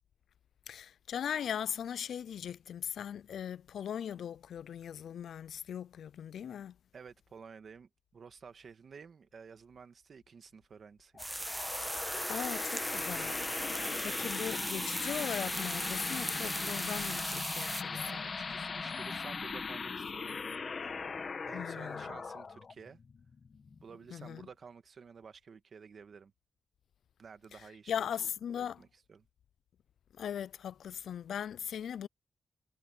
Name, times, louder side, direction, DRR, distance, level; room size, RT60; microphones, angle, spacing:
voice 1, 0.7-6.7 12.3-13.4 14.0-17.9 21.5-22.0 24.1-24.5 27.9-28.8 30.2-32.1, left 9 dB, 90° left, 0.3 m, -39 dB
voice 2, 6.9-11.3 17.9-20.4 20.8-21.2 21.5-23.0 23.8-26.3 27.2-28.1 28.5-29.3, right 6 dB, 60° right, 1.6 m, -52 dB
sound 1, 11.2-24.3, left 5 dB, 50° left, 1.8 m, -40 dB
sound 2, 11.2-17.8, right 1 dB, 10° right, 0.9 m, -38 dB
cardioid pair, 95°, 0 cm